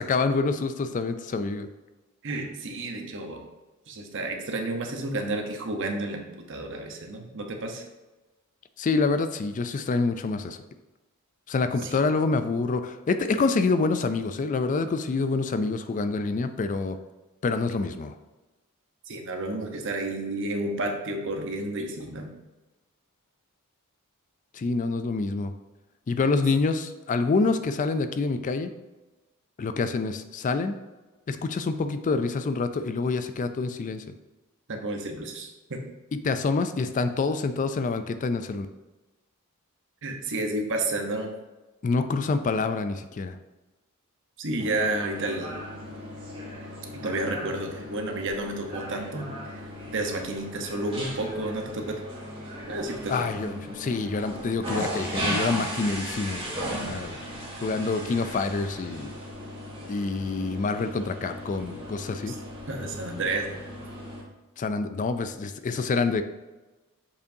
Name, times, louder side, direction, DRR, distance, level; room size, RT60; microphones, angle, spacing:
voice 1, 0.1-1.7 8.8-10.6 11.5-17.0 17.4-18.1 24.5-25.5 26.1-28.7 29.6-30.7 31.3-34.0 36.2-38.7 41.8-43.4 53.1-57.2 57.6-59.1 59.9-62.3 64.6-66.2, left 4 dB, 35° left, 9 dB, 0.3 m, -27 dB
voice 2, 2.2-3.5 3.9-7.8 11.8-11.9 19.1-22.3 34.7-35.8 40.0-41.3 44.4-45.6 47.0-49.3 49.5-49.6 49.9-52.0 52.7-53.1 62.3-62.4 62.7-63.7, right 2 dB, 60° right, 3 dB, 0.9 m, -31 dB
sound 1, 44.6-64.2, equal, 25° right, 1.8 m, -36 dB
6.9 x 5.3 x 2.7 m, 1.1 s
head